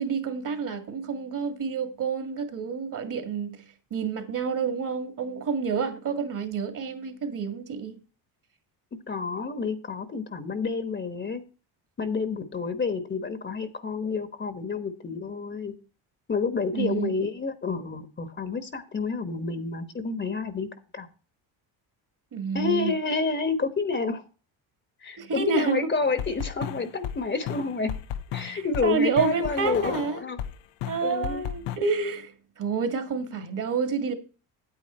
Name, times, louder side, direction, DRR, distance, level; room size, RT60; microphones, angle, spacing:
voice 1, 0.0-3.6 3.9-8.0 16.7-17.2 22.3-22.9 25.2-25.9 28.5-30.3 30.9-34.1, right 5 dB, 45° right, 2.0 m, -29 dB
voice 2, 9.1-11.4 12.0-15.7 16.3-21.1 22.5-24.2 25.0-27.9 28.3-30.4 31.0-31.4, left 4 dB, 25° left, 1.2 m, -29 dB
sound 1, 26.2-30.5 30.8-31.8, left 10 dB, 75° left, 0.8 m, -33 dB
9.0 x 8.6 x 4.3 m
cardioid pair, 95°, 42 cm